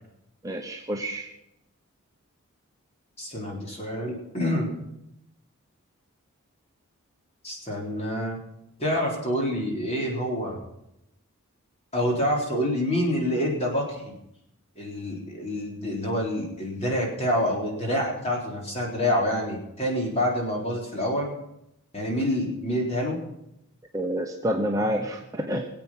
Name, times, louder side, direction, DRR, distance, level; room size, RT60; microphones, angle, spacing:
voice 1, 0.4-1.2 23.9-25.7, equal, 15° right, 2 dB, 0.9 m, -28 dB
voice 2, 3.2-4.7 7.4-8.4 8.8-10.6 11.9-14.1 14.8-21.3 21.9-23.2, equal, 30° left, -1 dB, 3.8 m, -27 dB
22.0 x 8.3 x 5.8 m, 0.81 s
head